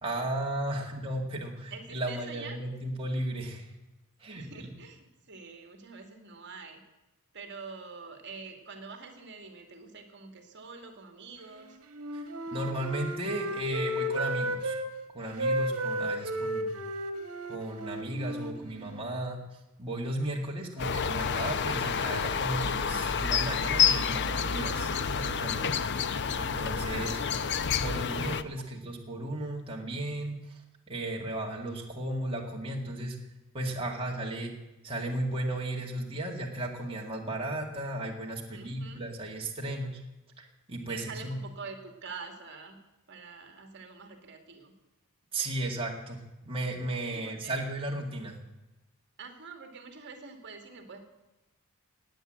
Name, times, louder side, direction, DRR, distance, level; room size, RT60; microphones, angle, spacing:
voice 1, 0.0-3.7 4.2-4.7 12.1-12.2 12.5-14.7 15.1-16.8 17.5-19.4 19.8-25.7 26.4-27.2 27.7-30.6 30.9-33.2 33.5-34.5 34.8-40.0 40.4-41.4 45.3-48.4, right 1 dB, 25° right, -1 dB, 2.1 m, -35 dB
voice 2, 1.7-2.6 4.4-6.8 7.3-11.8 25.8-26.4 26.9-27.7 38.5-39.0 40.9-42.8 43.1-44.7 47.1-47.6 49.2-51.0, right 4 dB, 55° right, 5 dB, 2.3 m, -46 dB
Wind instrument woodwind instrument, 11.9-14.9 15.4-19.2, equal, 70° right, 1.9 m, -33 dB
sound 1, 20.8-28.4, left 6 dB, 55° left, 0.7 m, -29 dB
19.0 x 9.2 x 7.8 m, 1.0 s
head